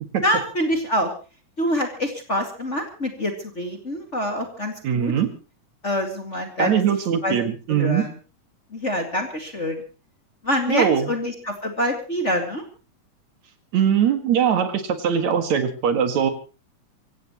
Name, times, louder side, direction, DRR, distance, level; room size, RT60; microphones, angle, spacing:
voice 1, 0.2-1.1 1.6-5.1 5.8-6.8 7.2-7.4 7.7-8.1 8.7-9.8 10.4-12.6, equal, 25° left, 4 dB, 2.2 m, -25 dB
voice 2, 4.8-5.3 6.6-8.0 10.7-11.1 13.7-16.3, right 8 dB, 65° right, 8 dB, 3.0 m, -21 dB
25.0 x 16.0 x 3.0 m, 0.33 s
omnidirectional pair, 3.5 m